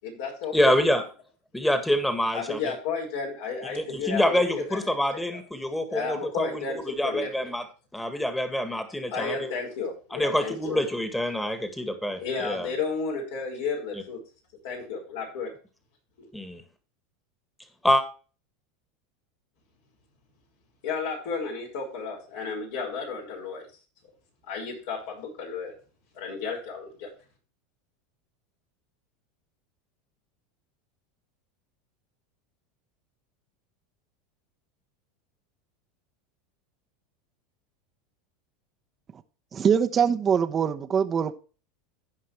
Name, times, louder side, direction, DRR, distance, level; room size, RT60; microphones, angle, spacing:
voice 1, 0.0-0.9 2.3-5.0 5.3-5.4 5.9-7.5 9.1-10.8 12.2-14.2 14.6-15.5 16.2-16.3 20.8-23.6 24.4-25.7 26.1-27.1, left 5 dB, 75° left, 5.5 m, -33 dB
voice 2, 0.5-1.0 1.5-2.7 3.7-7.6 7.9-9.5 10.1-12.7 13.9-14.0 16.3-16.6 17.8-18.0, left 1 dB, 5° left, 1.8 m, -26 dB
voice 3, 39.5-41.3, right 7 dB, 30° right, 1.0 m, -23 dB
16.0 x 5.5 x 3.2 m
hypercardioid pair, 100°, 0 cm